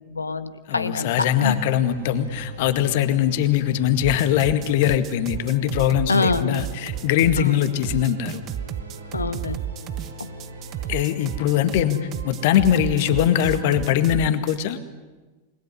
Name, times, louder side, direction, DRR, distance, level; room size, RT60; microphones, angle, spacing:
voice 1, 0.0-1.6 6.1-6.6 7.4-7.6 9.1-9.6 10.2-10.3, left 3 dB, 80° left, 12 dB, 1.5 m, -25 dB
voice 2, 0.7-8.4 10.9-14.8, left 11 dB, 50° left, 11 dB, 2.0 m, -21 dB
sound 1, 1.4-14.0, right 1 dB, 85° right, 6.8 m, -39 dB
sound 2, 4.0-14.7, right 12 dB, 35° right, 0.8 m, -32 dB
28.5 x 21.0 x 9.9 m, 1.2 s
figure-of-eight pair, 90°, 0 cm